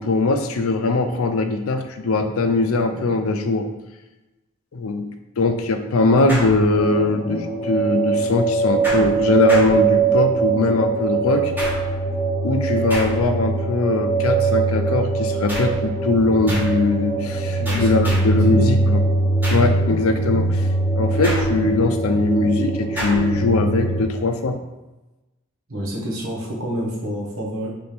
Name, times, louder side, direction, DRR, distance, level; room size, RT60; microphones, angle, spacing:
voice 1, 0.0-3.7 4.7-5.1 5.4-11.5 12.4-20.7 21.0-24.6, left 3 dB, 70° left, 7 dB, 0.5 m, -21 dB
sound 1, 6.3-7.1 8.8-10.4 11.6-12.1 12.9-13.5 15.5-15.9 16.5-16.9 17.6-18.5 19.4-19.8 21.2-21.9 23.0-23.4, equal, 10° right, 1.3 m, -30 dB
sound 2, 6.7-24.0, right 3 dB, 25° left, 1.4 m, -22 dB
voice 2, 17.6-18.2 18.5-18.7 25.7-27.7, equal, 75° right, -2 dB, 1.2 m, -28 dB
3.4 x 3.4 x 4.3 m, 1.1 s
head